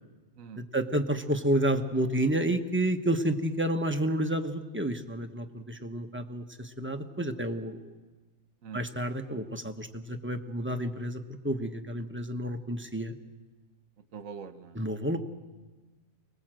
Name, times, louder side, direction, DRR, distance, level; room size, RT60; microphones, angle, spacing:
voice 1, 0.7-7.8 8.7-13.1 14.7-15.2, right 1 dB, 10° right, 5 dB, 1.0 m, -30 dB
voice 2, 14.1-14.8, right 6 dB, 75° right, 10 dB, 1.5 m, -43 dB
24.5 x 19.5 x 7.7 m, 1.2 s
omnidirectional pair, 1.4 m